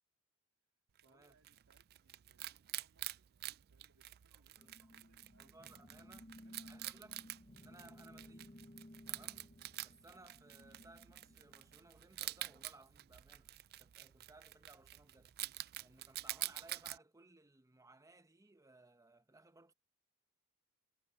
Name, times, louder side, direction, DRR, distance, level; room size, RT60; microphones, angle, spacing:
Wild animals, 1.0-17.0, right 15 dB, 45° right, 0.3 m, -48 dB
voice 1, 1.0-5.7 6.3-6.7, right 3 dB, 65° right, 2.9 m, -75 dB
sound 1, 4.6-12.3, left 1 dB, 25° left, 0.8 m, -59 dB
voice 2, 5.4-6.3 6.6-7.3 7.6-8.6 9.1-9.5 9.8-15.4 15.8-19.7, right 2 dB, 15° right, 0.8 m, -62 dB
head